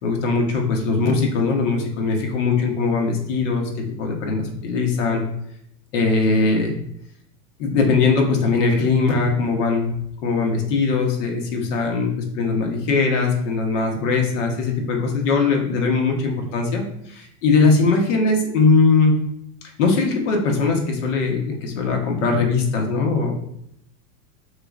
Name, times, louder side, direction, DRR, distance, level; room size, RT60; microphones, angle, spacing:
voice 1, 0.0-3.7 4.0-5.2 5.9-6.7 7.6-9.9 10.2-19.2 19.8-23.3, left 4 dB, 55° left, 2 dB, 1.0 m, -20 dB
4.8 x 4.0 x 2.4 m, 0.74 s
supercardioid pair, 175°, 45 cm